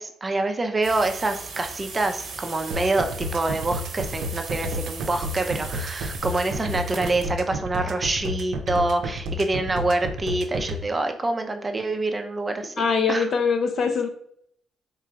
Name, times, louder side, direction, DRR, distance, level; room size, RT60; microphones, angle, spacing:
voice 1, 0.0-12.7 13.1-13.3, right 2 dB, 25° right, 6 dB, 0.5 m, -26 dB
sound 1, 0.8-7.3, right 4 dB, 55° right, 1.0 m, -38 dB
sound 2, 2.7-10.8, right 1 dB, 75° right, 0.5 m, -30 dB
voice 2, 12.8-14.1, left 5 dB, 50° left, 6 dB, 0.7 m, -22 dB
3.8 x 2.4 x 4.3 m, 0.66 s
cardioid pair, 90°, 0 cm